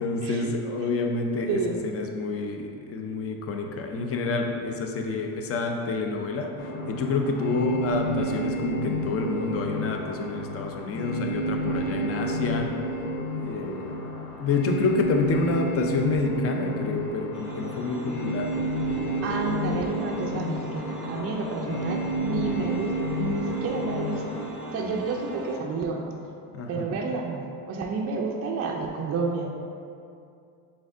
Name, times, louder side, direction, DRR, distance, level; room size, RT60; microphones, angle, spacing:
voice 1, 0.0-12.7 13.4-14.0 14.4-18.5 26.5-26.9, left 3 dB, 35° left, 3 dB, 0.5 m, -28 dB
voice 2, 1.5-1.8 19.2-24.2 24.7-26.1 26.7-29.5, right 4 dB, 35° right, 0 dB, 0.4 m, -30 dB
sound 1, 6.6-24.5, right 1 dB, 65° left, 0.8 m, -31 dB
sound 2, 17.3-25.6, left 1 dB, ahead, 1.0 m, -39 dB
5.0 x 3.5 x 2.5 m, 2.4 s
supercardioid pair, 100°, 45 cm